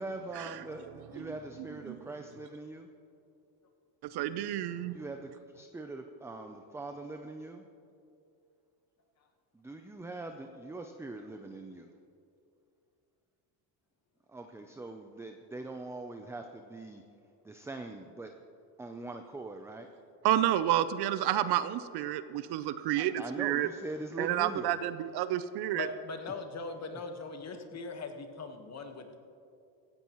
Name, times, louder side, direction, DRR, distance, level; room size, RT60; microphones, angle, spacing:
voice 1, 0.0-2.9 4.9-7.6 9.5-11.9 14.3-17.0 17.4-18.3 18.8-19.9 23.0-24.8, right 2 dB, 5° right, 5 dB, 0.4 m, -42 dB
voice 2, 4.1-5.0 20.2-23.7 24.2-25.9, right 12 dB, 55° right, 13 dB, 0.6 m, -30 dB
voice 3, 25.7-29.2, left 4 dB, 30° left, 6 dB, 1.4 m, -40 dB
16.5 x 15.0 x 3.1 m, 2.6 s
supercardioid pair, 110°, 49 cm